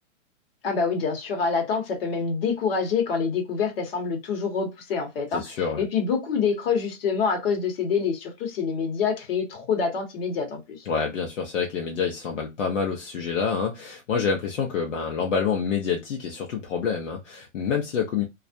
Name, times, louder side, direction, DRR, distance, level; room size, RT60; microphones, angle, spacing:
voice 1, 0.6-5.4 5.8-10.9, left 5 dB, 45° left, 1.1 m, -26 dB
voice 2, 5.3-5.8 10.9-18.2, left 6 dB, 65° left, 0.7 m, -27 dB
2.4 x 2.0 x 2.6 m
hypercardioid pair, 145°, 40 cm